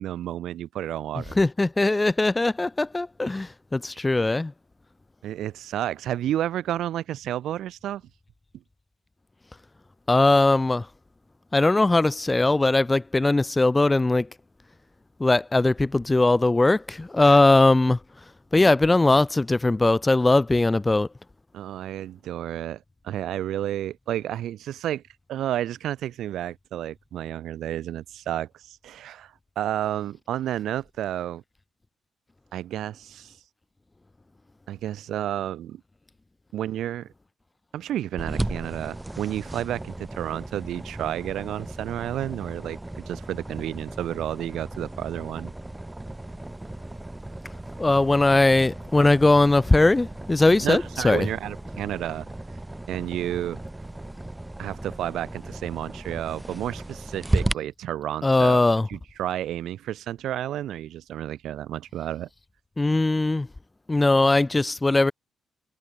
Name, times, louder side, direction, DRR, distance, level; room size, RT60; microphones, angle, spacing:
voice 1, 0.0-1.3 5.2-8.0 17.2-17.4 21.5-25.0 25.3-31.4 32.5-33.3 34.7-35.8 36.5-37.1 37.7-45.5 50.6-52.3 52.9-53.6 54.6-58.6 58.9-62.3, right 12 dB, 75° right, 1.9 m, -31 dB
voice 2, 1.4-4.5 10.1-10.9 11.5-14.3 15.2-18.0 18.5-21.1 47.8-51.3 58.2-58.9 62.8-63.5 63.9-65.1, left 2 dB, 15° left, 0.6 m, -20 dB
sound 1, 38.2-57.5, right 1 dB, 10° right, 1.8 m, -35 dB
cardioid pair, 155°, 0 cm